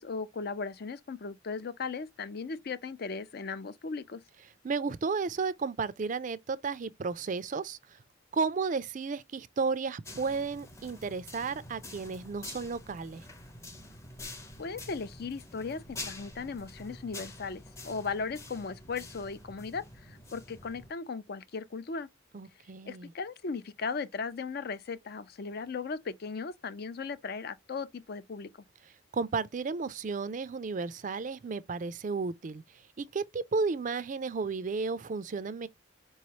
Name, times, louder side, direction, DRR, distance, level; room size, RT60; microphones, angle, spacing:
voice 1, 0.0-4.2 14.6-22.1 22.9-28.5, left 4 dB, 55° left, 0.5 m, -37 dB
voice 2, 4.6-8.0 8.3-13.2 22.3-23.1 29.1-32.6 33.0-35.7, right 4 dB, 40° right, 0.4 m, -33 dB
sound 1, 10.0-20.9, left 2 dB, 15° left, 0.6 m, -47 dB
4.6 x 3.1 x 2.9 m
head